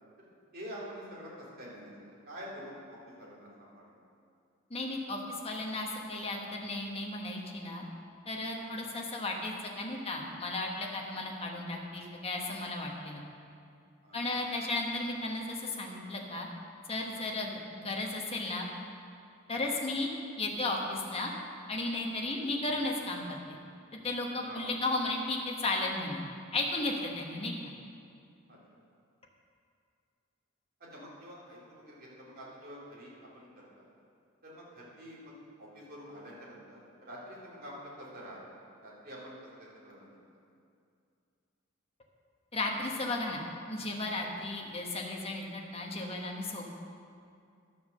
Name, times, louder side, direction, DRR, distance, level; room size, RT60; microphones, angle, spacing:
voice 1, 0.5-3.9 8.6-8.8 14.0-14.2 19.5-19.7 24.5-24.7 28.5-28.6 30.8-33.8 34.4-38.4 38.8-39.5 39.8-40.2, equal, 45° right, -6 dB, 3.1 m, -47 dB
voice 2, 4.7-7.8 8.3-13.2 14.1-16.5 16.9-18.7 19.5-20.1 20.4-21.3 21.7-23.6 23.9-26.2 26.5-27.5 42.5-43.4 43.7-46.7, left 2 dB, 30° left, 0 dB, 1.3 m, -34 dB
11.5 x 6.9 x 6.6 m, 2.4 s
head